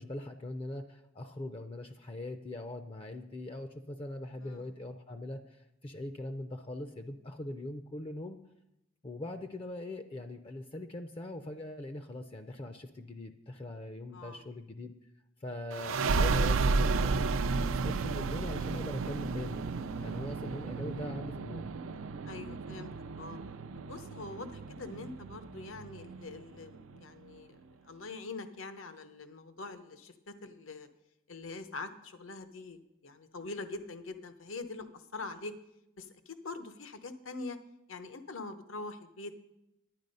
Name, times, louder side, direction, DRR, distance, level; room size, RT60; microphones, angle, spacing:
voice 1, 0.0-8.4 9.0-14.9 15.4-17.3 17.6-19.7 20.0-21.7, left 1 dB, 25° left, 8 dB, 0.5 m, -41 dB
voice 2, 4.3-4.7 14.1-14.4 19.9-20.3 22.2-23.4 23.7-30.9 31.3-35.5 36.0-37.6 37.9-39.4, left 3 dB, 75° left, 10 dB, 0.9 m, -44 dB
sound 1, 15.7-27.0, right 4 dB, 85° right, 0.4 m, -33 dB
10.5 x 9.4 x 5.4 m, 0.87 s
head